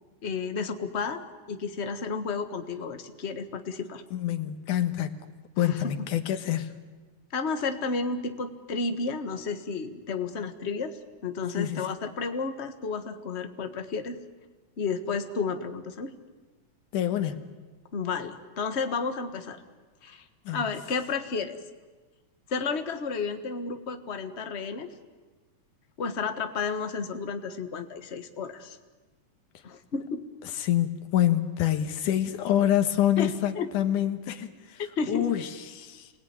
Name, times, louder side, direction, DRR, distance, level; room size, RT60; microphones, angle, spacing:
voice 1, 0.2-1.2 1.5-4.0 5.6-5.8 7.3-14.2 14.8-16.1 17.9-19.6 20.0-20.2 20.5-21.6 22.5-24.9 26.0-28.8 29.6-30.3 33.2-33.7 35.0-35.3, left 5 dB, 35° left, 1.0 m, -32 dB
voice 2, 4.1-5.3 5.6-6.7 11.6-11.9 16.9-17.5 20.5-20.7 30.6-34.8 35.1-36.1, left 11 dB, 85° left, 2.9 m, -27 dB
29.0 x 21.0 x 9.7 m
omnidirectional pair, 3.5 m